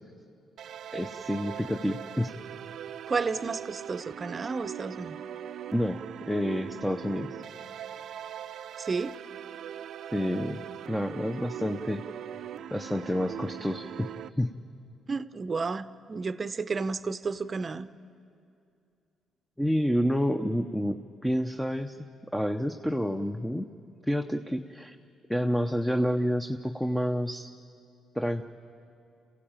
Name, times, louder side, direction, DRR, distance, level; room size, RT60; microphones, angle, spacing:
sound 1, 0.6-14.3, right 10 dB, 70° right, 0.6 m, -41 dB
voice 1, 0.9-2.3 5.7-7.3 10.1-12.0 12.7-14.1 14.4-14.5 19.6-21.0 21.2-22.0 22.3-23.6 24.0-25.0 25.3-27.5 28.1-28.4, equal, 5° left, 6 dB, 0.7 m, -29 dB
voice 2, 3.1-5.2 8.8-9.2 15.1-17.9, right 4 dB, 35° right, 13 dB, 0.7 m, -32 dB
27.0 x 15.5 x 8.9 m, 2.5 s
cardioid pair, 90°, 0 cm